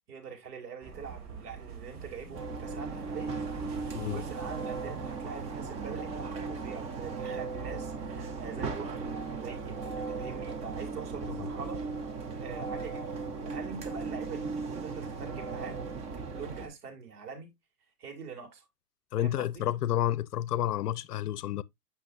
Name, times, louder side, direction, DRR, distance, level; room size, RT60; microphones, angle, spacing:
voice 1, 0.0-3.3 3.7-9.1 9.4-11.8 12.4-17.5 18.0-18.6 19.2-19.6, right 6 dB, 65° right, 2.9 m, -44 dB
sound 1, 0.8-8.8, right 5 dB, 40° right, 2.8 m, -47 dB
sound 2, 2.3-16.7, right 4 dB, 15° right, 0.5 m, -37 dB
voice 2, 19.1-21.6, left 12 dB, 70° left, 0.6 m, -30 dB
7.8 x 5.9 x 2.5 m
hypercardioid pair, 125°, 48 cm